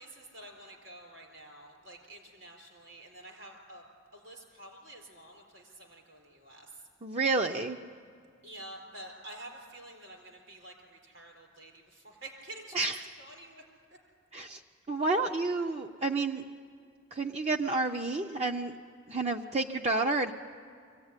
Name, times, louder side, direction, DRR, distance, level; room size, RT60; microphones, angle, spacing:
voice 1, 0.0-3.8 4.1-6.8 8.4-12.9 13.2-13.6, right 1 dB, 70° right, 2 dB, 4.4 m, -49 dB
voice 2, 7.0-7.8 12.7-13.1 14.3-14.6 14.9-16.4 17.1-18.8 19.1-20.3, right 3 dB, 35° right, 3 dB, 0.6 m, -30 dB
23.5 x 16.5 x 9.7 m, 2.1 s
head